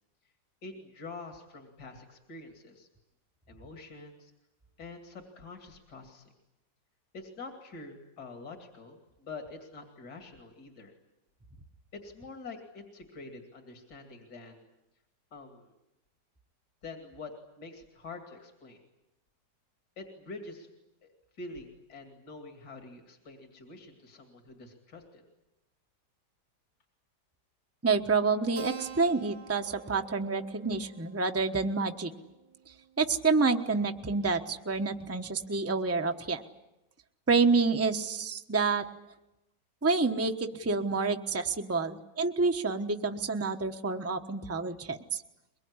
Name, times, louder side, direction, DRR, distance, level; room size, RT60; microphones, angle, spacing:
voice 1, 0.6-2.9 3.5-4.3 4.8-6.3 7.1-10.9 11.9-14.7 15.3-15.7 16.8-18.8 20.0-20.7 21.0-21.1 21.4-25.2, left 3 dB, 65° left, 4 dB, 3.1 m, -46 dB
voice 2, 27.8-32.1 33.0-36.4 37.3-38.8 39.8-45.2, right 4 dB, 10° right, 5 dB, 1.0 m, -28 dB
Keyboard (musical), 28.6-33.5, right 5 dB, 60° right, 1.8 m, -48 dB
23.5 x 22.5 x 9.7 m, 0.93 s
omnidirectional pair, 1.9 m